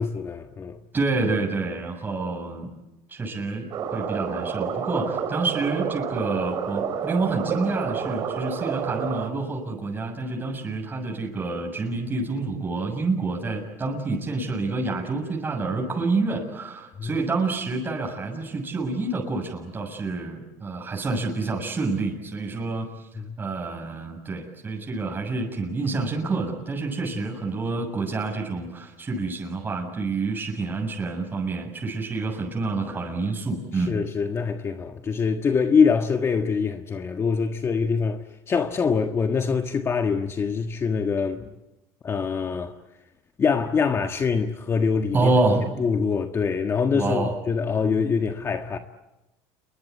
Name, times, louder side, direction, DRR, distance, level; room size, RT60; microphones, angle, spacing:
voice 1, 0.0-0.8 17.0-17.2 23.1-23.3 33.7-41.5 42.0-42.8 43.4-45.3 45.8-48.8, left 5 dB, 30° left, 1.5 m, -24 dB
voice 2, 0.9-2.8 3.1-22.9 23.4-34.0 45.1-45.7 46.9-47.3, right 3 dB, 20° right, 7.1 m, -28 dB
sound 1, 3.7-9.3, right 7 dB, 50° right, 4.6 m, -29 dB
28.5 x 23.0 x 8.5 m
supercardioid pair, 110°, 9 cm